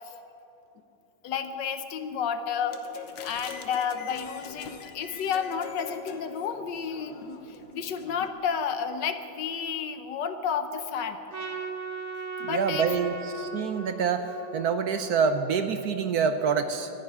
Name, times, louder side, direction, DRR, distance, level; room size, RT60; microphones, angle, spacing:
voice 1, 1.2-2.8 3.2-11.2 12.4-12.9, left 7 dB, 70° left, 9 dB, 1.5 m, -31 dB
sound 1, 2.7-8.3, left 6 dB, 85° left, 1.9 m, -43 dB
Trumpet, 11.3-15.7, right 5 dB, 30° right, 0.9 m, -38 dB
voice 2, 12.4-16.9, right 6 dB, 65° right, 9 dB, 1.1 m, -26 dB
13.5 x 11.0 x 9.6 m, 3.0 s
omnidirectional pair, 2.1 m